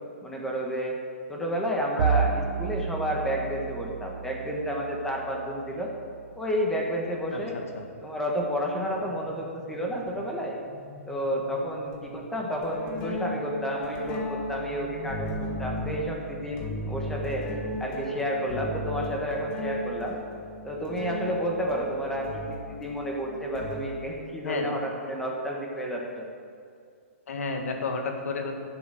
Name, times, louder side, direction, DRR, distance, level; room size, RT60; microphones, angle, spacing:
voice 1, 0.2-1.0 1.3-5.9 6.4-7.6 8.0-10.6 11.1-17.5 17.8-20.2 20.6-26.3, equal, 5° left, -1 dB, 1.3 m, -31 dB
Bowed string instrument, 2.0-6.6, right 7 dB, 70° right, 0.6 m, -32 dB
sound 1, 8.4-8.5 10.1-10.2 11.9-12.1 12.6-24.2, left 1 dB, 35° left, 1.7 m, -36 dB
sound 2, 8.5-19.6, right 2 dB, 20° right, 2.6 m, -47 dB
voice 2, 24.4-24.8 27.3-28.5, left 3 dB, 75° left, 3 dB, 1.9 m, -31 dB
11.5 x 7.1 x 6.6 m, 2.3 s
hypercardioid pair, 160°, 8 cm